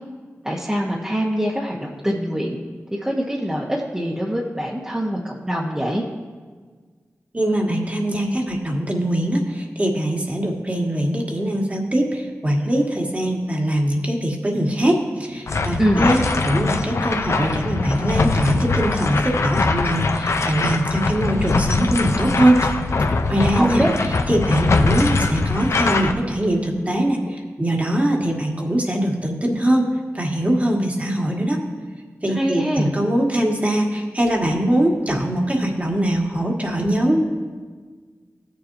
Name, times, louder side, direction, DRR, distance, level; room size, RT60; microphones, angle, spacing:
voice 1, 0.4-2.6 2.9-6.0 15.8-16.1 23.6-23.9 32.3-32.9, equal, 15° right, -4 dB, 1.1 m, -24 dB
voice 2, 7.3-22.7 23.3-23.8 24.3-31.6 32.2-37.2, right 1 dB, 30° right, 0 dB, 1.7 m, -22 dB
sound 1, 15.5-26.1, left 3 dB, 65° left, 0.6 m, -22 dB
15.5 x 7.0 x 2.7 m, 1.5 s
cardioid pair, 55°, 5 cm